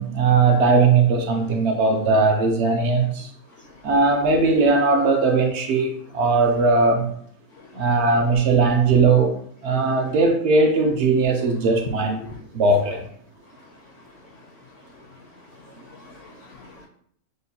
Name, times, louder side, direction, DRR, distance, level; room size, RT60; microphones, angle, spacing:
voice 1, 0.0-3.3 3.8-7.1 7.7-9.4 9.6-12.2 12.5-13.0, right 4 dB, 65° right, 4 dB, 0.7 m, -19 dB
voice 2, 3.5-3.9 7.5-7.8 12.2-12.4 13.5-16.9, left 3 dB, 65° left, 1 dB, 0.8 m, -48 dB
6.5 x 2.2 x 2.7 m, 0.65 s
omnidirectional pair, 1.5 m